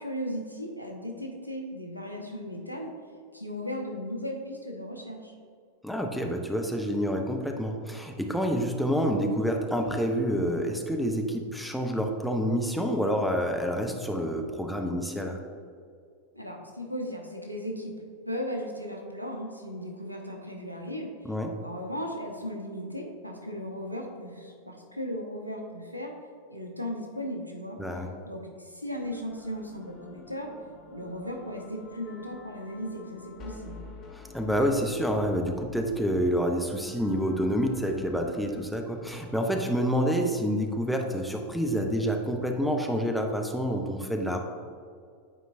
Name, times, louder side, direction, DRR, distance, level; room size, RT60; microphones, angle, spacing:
voice 1, 0.0-2.9 3.3-5.3 16.3-17.9 18.3-21.1 21.6-26.2 26.5-27.8 28.2-30.5 30.9-33.8, equal, 90° right, 1 dB, 0.8 m, -36 dB
voice 2, 5.8-15.4 21.3-21.6 27.8-28.1 34.1-44.4, equal, ahead, 2 dB, 0.6 m, -28 dB
sound 1, 29.0-39.7, left 3 dB, 30° left, 0.9 m, -49 dB
9.1 x 4.5 x 2.6 m, 2.2 s
figure-of-eight pair, 90°, 0 cm